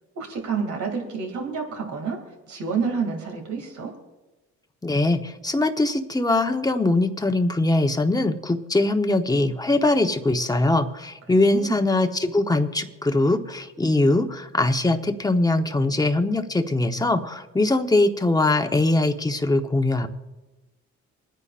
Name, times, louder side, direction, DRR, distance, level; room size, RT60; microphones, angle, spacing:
voice 1, 0.1-2.2 2.5-3.9 11.3-11.8, right 5 dB, 70° right, 3 dB, 2.7 m, -29 dB
voice 2, 4.8-20.1, left 2 dB, 10° left, 6 dB, 1.0 m, -22 dB
28.5 x 9.8 x 2.5 m, 1.1 s
cardioid pair, 90°, 30 cm